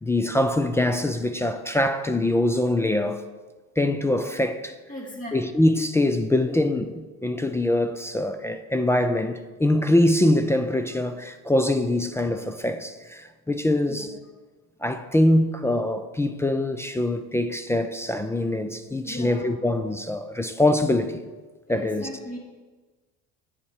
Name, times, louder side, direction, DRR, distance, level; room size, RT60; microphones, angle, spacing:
voice 1, 0.0-3.2 3.8-4.7 5.3-14.1 14.8-21.2 21.7-22.1, left 1 dB, 10° left, 0.4 m, -23 dB
voice 2, 4.9-5.4 14.0-14.1 19.0-19.5 21.7-22.4, equal, 25° left, 2.5 m, -37 dB
8.9 x 7.0 x 4.8 m
supercardioid pair, 105°, 33 cm